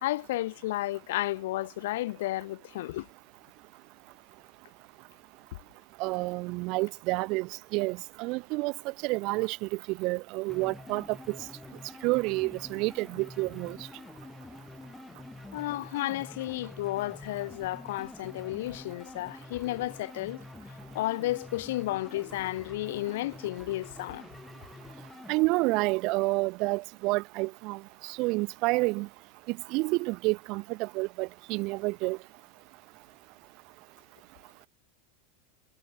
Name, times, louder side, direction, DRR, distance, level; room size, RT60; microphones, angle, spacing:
voice 1, 0.0-3.1 15.5-20.4 20.9-24.3, left 16 dB, 65° left, 1.7 m, -32 dB
voice 2, 6.0-8.7 9.0-11.4 12.0-13.8 25.3-27.8 28.1-29.1 29.5-32.2, right 25 dB, 40° right, 1.3 m, -29 dB
sound 1, 10.5-25.4, left 2 dB, 5° left, 4.5 m, -47 dB
supercardioid pair, 160°, 0 cm